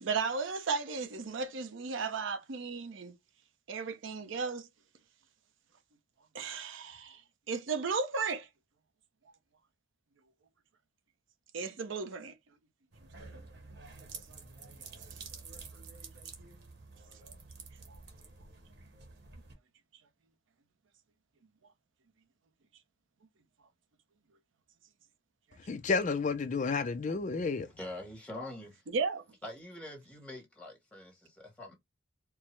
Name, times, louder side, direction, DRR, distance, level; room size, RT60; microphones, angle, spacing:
voice 1, 0.0-3.1 3.7-4.7 6.3-7.2 7.5-8.5 11.5-12.3 28.9-29.2, right 5 dB, 70° right, 0.6 m, -34 dB
sound 1, 12.9-19.5, right 4 dB, 55° right, 1.0 m, -49 dB
voice 2, 25.5-27.8, left 4 dB, 40° left, 0.4 m, -31 dB
voice 3, 27.8-28.8 29.4-31.7, left 1 dB, 5° left, 1.3 m, -44 dB
4.5 x 2.0 x 3.1 m
head